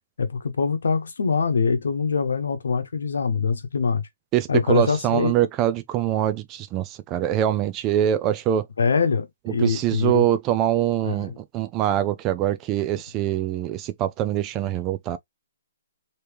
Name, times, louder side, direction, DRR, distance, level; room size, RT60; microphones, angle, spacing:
voice 1, 0.2-4.0 4.5-5.3 8.8-10.4 11.0-11.4, left 5 dB, 80° left, 0.9 m, -23 dB
voice 2, 4.3-8.7 9.6-15.2, right 12 dB, 25° right, 0.3 m, -24 dB
3.3 x 2.9 x 3.0 m
hypercardioid pair, 145°, 0 cm